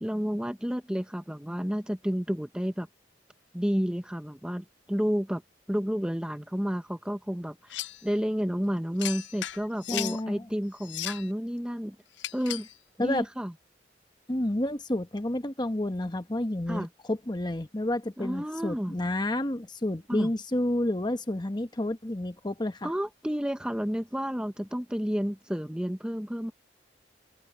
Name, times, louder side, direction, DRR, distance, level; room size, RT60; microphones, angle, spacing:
voice 1, 0.0-2.9 3.5-5.4 5.7-12.0 12.3-12.7 13.0-13.5 16.7-16.9 18.2-19.0 20.1-20.3 22.8-26.5, equal, 5° right, 0.8 m, -31 dB
sound 1, 7.7-8.0 9.0-10.2 10.8-11.3 12.2-12.7, left 14 dB, 80° left, 0.5 m, -36 dB
voice 2, 9.9-10.5 13.0-13.2 14.3-22.9, left 1 dB, 25° left, 1.1 m, -30 dB
head